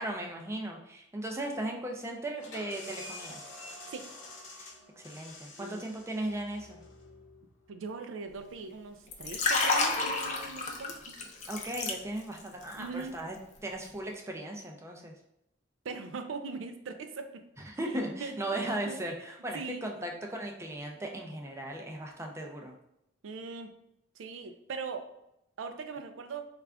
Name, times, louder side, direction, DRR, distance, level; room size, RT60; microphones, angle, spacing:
voice 1, 0.0-3.4 4.6-4.7 5.0-6.8 11.5-13.4 13.6-15.1 17.6-22.8, right 1 dB, 15° right, 1 dB, 0.4 m, -37 dB
sound 1, 2.4-7.8, left 2 dB, 70° left, 0.8 m, -48 dB
voice 2, 7.7-11.1 12.7-13.1 15.8-17.5 17.8-18.4 18.9-19.0 19.5-19.8 23.2-23.7 24.2-25.1 25.6-26.5, right 4 dB, 85° right, 7 dB, 0.4 m, -40 dB
Liquid, 9.1-12.4 12.7-13.0, left 3 dB, 35° left, 0.5 m, -30 dB
3.4 x 2.4 x 3.4 m, 0.81 s
head